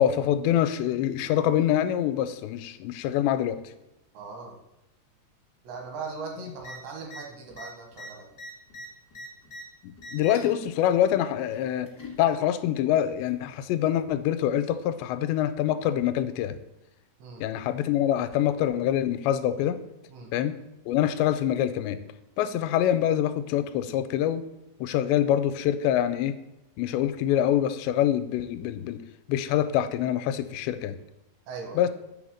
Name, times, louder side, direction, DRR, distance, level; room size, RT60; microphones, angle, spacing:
voice 1, 0.0-3.6 9.8-11.9 12.2-16.6 17.4-19.8 20.3-20.6 20.9-22.0 22.4-24.4 24.8-26.4 26.8-29.0 29.3-31.0 31.8-31.9, left 11 dB, 85° left, 11 dB, 2.7 m, -25 dB
voice 2, 4.2-4.6 5.6-8.3 17.2-17.4 20.1-20.3 31.5-31.8, right 4 dB, 85° right, 2 dB, 3.7 m, -39 dB
sound 1, 6.6-6.8 7.0-7.2 7.5-9.6 10.0-10.5 11.5-12.2 13.2-13.3, left 1 dB, 65° left, 0.9 m, -42 dB
8.4 x 3.6 x 6.3 m, 0.93 s
omnidirectional pair, 5.0 m